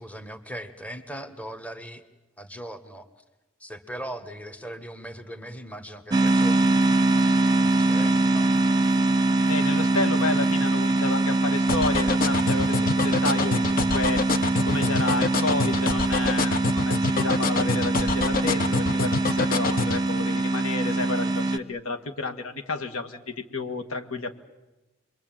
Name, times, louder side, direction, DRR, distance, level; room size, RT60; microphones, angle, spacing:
voice 1, 0.0-2.0 2.4-3.1 3.6-6.6 7.5-8.5, right 1 dB, 5° left, 9 dB, 1.4 m, -39 dB
sound 1, 6.1-21.6, right 2 dB, 20° right, 0.9 m, -23 dB
voice 2, 9.5-14.2 14.6-24.3, left 3 dB, 75° left, 5 dB, 2.0 m, -31 dB
sound 2, 11.7-20.0, left 4 dB, 45° left, 1.0 m, -26 dB
28.5 x 23.0 x 9.0 m, 1.0 s
head